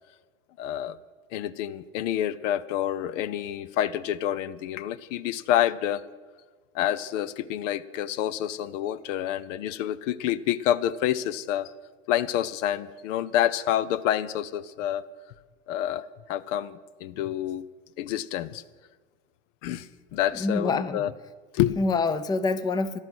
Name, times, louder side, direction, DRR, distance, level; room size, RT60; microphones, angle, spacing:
voice 1, 0.6-1.0 1.3-6.0 6.7-11.7 12.1-15.0 15.7-16.0 16.3-17.7 18.0-18.6 19.6-21.1 21.5-21.8, left 11 dB, 75° left, 17 dB, 0.8 m, -28 dB
voice 2, 20.3-21.1 21.8-23.0, left 3 dB, 10° left, 14 dB, 0.5 m, -26 dB
13.0 x 11.5 x 7.8 m, 1.4 s
supercardioid pair, 130°, 37 cm